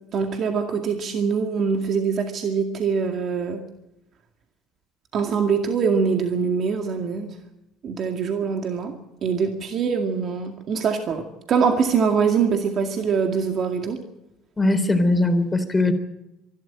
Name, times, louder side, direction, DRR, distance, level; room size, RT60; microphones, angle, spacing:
voice 1, 0.1-3.6 5.1-7.3 7.8-8.9 9.2-14.0, right 6 dB, 50° right, 4 dB, 2.1 m, -23 dB
voice 2, 14.6-15.9, left 2 dB, 15° left, 8 dB, 3.5 m, -20 dB
24.5 x 12.5 x 8.8 m, 0.90 s
supercardioid pair, 85°, 0 cm